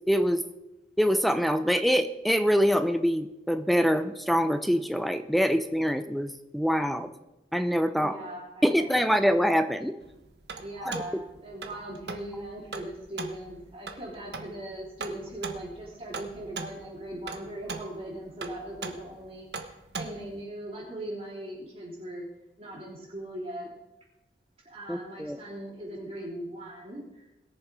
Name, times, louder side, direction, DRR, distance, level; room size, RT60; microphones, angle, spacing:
voice 1, 0.1-0.4 1.0-7.1 7.5-8.2 8.6-9.9 10.9-11.0 24.9-25.4, equal, ahead, 9 dB, 0.6 m, -25 dB
voice 2, 7.9-9.0 10.6-22.3 22.6-23.7 24.6-27.2, right 1 dB, 35° right, -10 dB, 3.7 m, -40 dB
sound 1, 10.0-20.4, right 4 dB, 75° right, 1.2 m, -40 dB
21.0 x 7.0 x 4.8 m, 0.96 s
head